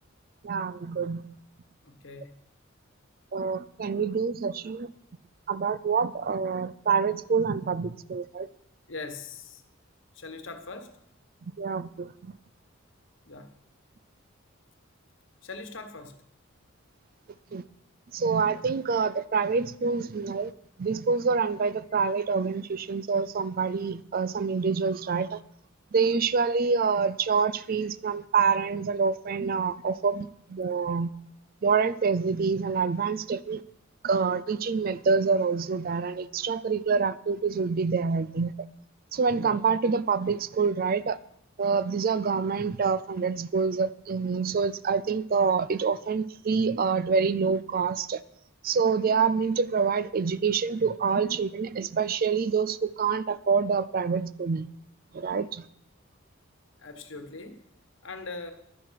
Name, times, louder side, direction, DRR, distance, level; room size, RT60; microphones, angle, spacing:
voice 1, 0.4-1.2 3.3-4.9 5.5-8.5 11.6-12.1 17.5-17.6 18.1-20.5 20.8-25.4 25.9-31.1 31.6-33.6 34.0-38.5 39.1-41.2 41.6-48.2 48.6-54.7 55.1-55.6, right 5 dB, 45° right, 0.4 m, -26 dB
voice 2, 1.8-2.3 8.9-9.6 10.1-11.0 13.2-13.5 15.4-16.2 39.3-39.5 56.8-57.6 58.0-58.5, left 3 dB, 60° left, 1.3 m, -41 dB
11.0 x 9.5 x 5.8 m
head